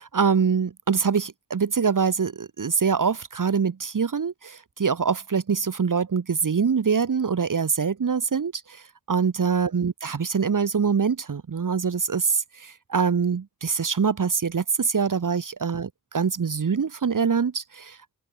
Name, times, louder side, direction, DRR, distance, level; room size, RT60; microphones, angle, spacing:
voice 1, 0.1-8.8 9.1-18.1, right 6 dB, 55° right, 1.0 m, -24 dB
open air
wide cardioid pair, 50°, 38 cm